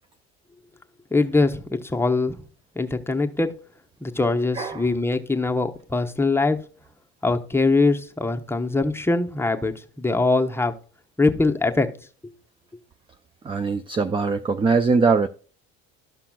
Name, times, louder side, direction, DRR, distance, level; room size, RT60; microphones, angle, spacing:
voice 1, 1.1-2.4 2.7-3.5 4.0-6.6 7.2-10.7 11.2-11.9 12.2-12.3, left 3 dB, 10° left, 0.9 m, -22 dB
voice 2, 4.5-4.9 13.4-15.3, right 4 dB, 20° right, 0.4 m, -21 dB
13.0 x 5.7 x 2.3 m
cardioid pair, 110°, 30 cm